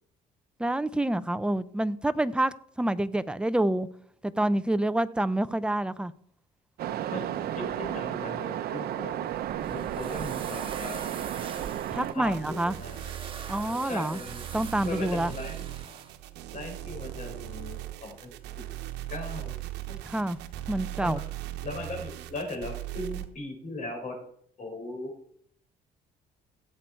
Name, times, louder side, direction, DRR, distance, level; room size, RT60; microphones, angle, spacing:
voice 1, 0.6-3.9 4.2-6.1 11.9-12.7 13.5-14.2 14.5-15.3 20.0-20.4 20.7-21.2, right 1 dB, 5° right, 0.6 m, -27 dB
Waves surf, 6.8-12.1, right 11 dB, 65° right, 0.8 m, -33 dB
voice 2, 7.1-9.2 9.7-11.0 12.1-13.0 13.8-14.4 14.8-15.6 16.5-18.3 19.1-19.6 19.9-20.0 21.0-21.2 21.6-24.2 24.6-25.1, left 2 dB, 50° left, 5.2 m, -38 dB
sound 1, 9.3-16.1, right 5 dB, 30° right, 1.8 m, -44 dB
sound 2, 12.2-23.3, right 14 dB, 90° right, 1.0 m, -39 dB
16.5 x 7.8 x 4.6 m
cardioid pair, 110°, 17 cm